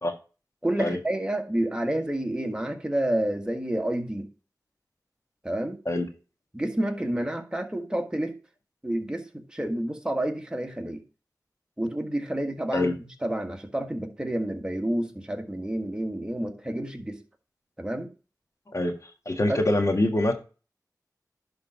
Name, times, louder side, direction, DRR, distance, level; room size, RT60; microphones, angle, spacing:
voice 1, 0.6-4.3 5.4-5.8 6.5-8.4 8.8-11.0 11.8-12.9 13.2-17.2 17.8-18.1 19.5-19.6, right 1 dB, 10° right, 1.6 m, -29 dB
voice 2, 19.2-20.3, left 1 dB, 45° left, 1.6 m, -24 dB
11.0 x 4.0 x 4.4 m
wide cardioid pair, 50°, 7 cm